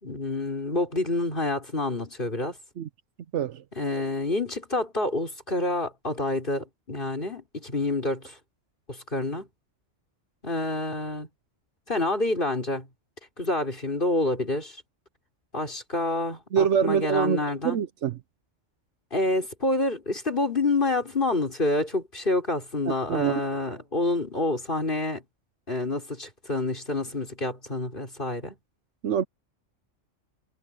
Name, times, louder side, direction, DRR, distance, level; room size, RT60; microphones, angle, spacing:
voice 1, 0.0-2.6 3.8-8.4 8.9-9.5 10.4-11.3 11.9-12.9 13.4-14.8 15.5-17.8 19.1-25.2 25.7-28.6, left 2 dB, 45° left, 5.2 m, -28 dB
voice 2, 3.3-3.6 16.5-18.2 22.9-23.4 29.0-29.2, right 8 dB, 70° right, 1.0 m, -25 dB
omnidirectional pair, 1.3 m